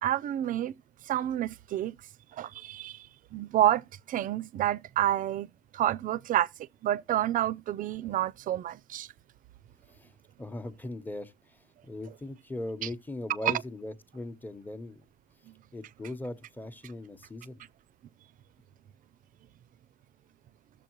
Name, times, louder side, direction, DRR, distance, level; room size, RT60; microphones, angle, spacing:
voice 1, 0.0-0.7 1.0-2.0 2.3-5.5 5.7-6.5 6.8-9.1 12.8-12.9 13.4-13.5 15.5-15.6, right 12 dB, 55° right, 0.4 m, -29 dB
voice 2, 9.9-15.0 15.7-17.6, left 2 dB, 10° left, 0.9 m, -39 dB
13.5 x 7.2 x 3.0 m
cardioid pair, 110°, 17 cm